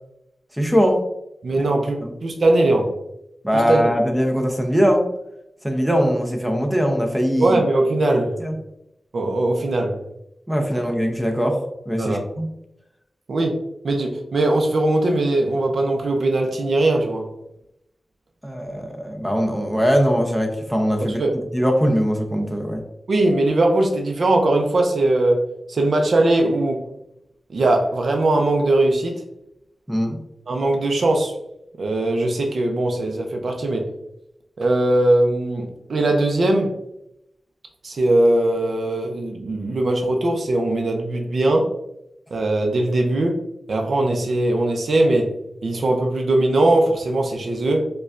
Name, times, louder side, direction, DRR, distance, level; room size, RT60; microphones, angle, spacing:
voice 1, 0.6-1.0 1.6-1.7 2.0-2.1 3.4-5.1 5.6-7.6 8.4-8.5 10.5-11.6 11.9-12.5 18.4-21.2 21.5-22.8 29.9-30.2, equal, 5° right, 2 dB, 0.6 m, -21 dB
voice 2, 1.4-2.0 2.2-2.9 3.5-3.9 7.4-8.4 9.1-10.0 12.0-12.2 13.3-13.6 13.8-17.2 21.0-21.4 23.1-25.4 25.7-26.9 27.5-29.2 30.5-31.3 31.8-33.9 34.6-36.7 37.8-41.7 42.3-43.4 43.7-45.3 45.6-47.9, right 2 dB, 70° right, 2 dB, 0.5 m, -20 dB
5.0 x 2.2 x 2.4 m, 0.83 s
wide cardioid pair, 105°, 0 cm